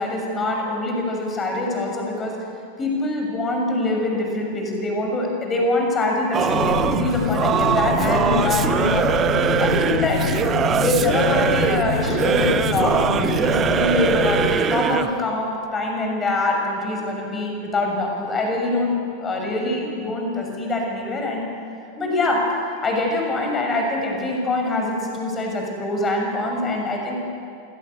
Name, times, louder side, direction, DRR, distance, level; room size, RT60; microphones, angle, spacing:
voice 1, 0.0-2.4 2.8-9.1 9.6-10.3 10.7-13.1 13.3-21.4 22.0-22.5 22.8-27.2, left 2 dB, 20° left, 1 dB, 6.6 m, -24 dB
Singing / Musical instrument, 6.3-15.2, right 7 dB, 25° right, 1.1 m, -22 dB
sound 1, 6.5-14.5, left 5 dB, 65° left, 7.7 m, -26 dB
28.0 x 17.5 x 8.4 m, 2.6 s
figure-of-eight pair, 90°, 0 cm